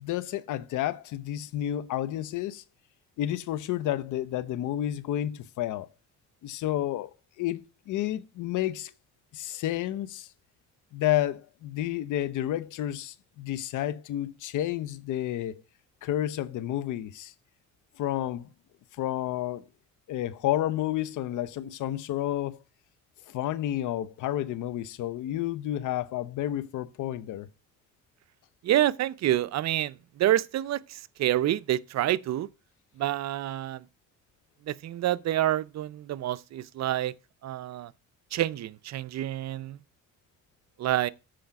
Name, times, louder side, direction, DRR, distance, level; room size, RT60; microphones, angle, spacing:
voice 1, 0.0-2.6 3.2-5.9 6.4-8.9 9.3-10.3 10.9-15.6 16.0-17.3 18.0-18.5 19.0-19.7 20.1-22.6 23.3-27.5, left 13 dB, 80° left, 0.7 m, -30 dB
voice 2, 28.6-32.5 33.0-33.8 34.7-37.1 37.4-37.9 38.3-39.8 40.8-41.1, right 13 dB, 60° right, 0.6 m, -28 dB
7.7 x 5.0 x 5.8 m
cardioid pair, 90°, 30 cm